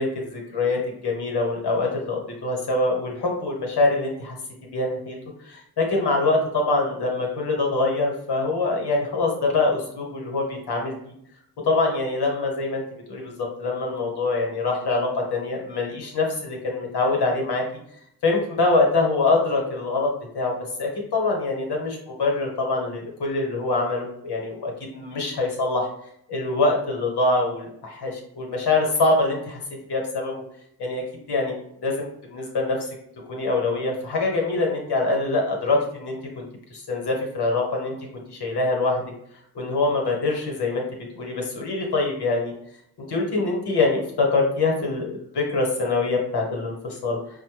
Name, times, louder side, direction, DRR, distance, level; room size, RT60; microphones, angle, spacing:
voice 1, 0.0-4.4 4.7-11.0 11.7-12.8 13.1-17.6 18.2-25.9 26.3-29.6 29.9-30.4 30.8-32.8 33.3-36.4 36.7-37.9 38.3-39.0 39.5-40.9 41.1-42.5 43.0-47.2, left 3 dB, 85° left, 0 dB, 1.2 m, -24 dB
5.2 x 2.1 x 3.2 m, 0.72 s
cardioid pair, 45°, 39 cm